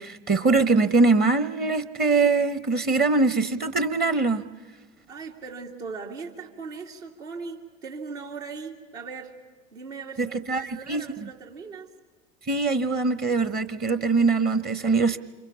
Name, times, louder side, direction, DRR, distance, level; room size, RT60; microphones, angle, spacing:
voice 1, 0.0-4.4 10.2-10.6 10.9-11.0 12.5-15.2, right 3 dB, 25° right, 14 dB, 0.9 m, -22 dB
voice 2, 5.1-9.4 9.7-11.9, right 5 dB, 70° right, -1 dB, 2.7 m, -39 dB
29.5 x 26.5 x 5.7 m, 1.3 s
figure-of-eight pair, 85°, 38 cm